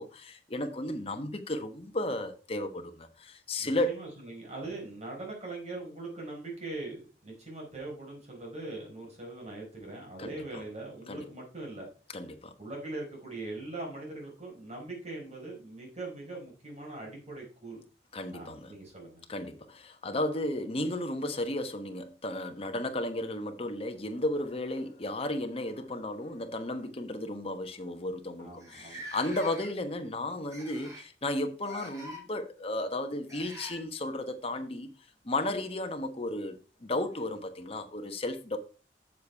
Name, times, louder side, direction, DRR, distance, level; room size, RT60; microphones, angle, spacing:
voice 1, 0.0-4.0 10.2-10.6 11.1-11.2 12.1-12.5 18.1-18.7 19.3-34.9 35.2-38.6, left 1 dB, 35° left, 1.2 m, -34 dB
voice 2, 3.6-11.9 12.6-17.8 18.3-19.2 28.4-29.0, right 2 dB, 40° right, 4.8 m, -41 dB
sound 1, 24.0-25.1 26.2-26.3 26.7-26.9 27.6-27.7 27.9-28.0 28.6-29.9 30.5-31.1 31.6-32.2 33.3-33.8 35.9-36.0 37.1-37.2, equal, 20° right, 3.3 m, -45 dB
7.5 x 7.2 x 4.6 m
head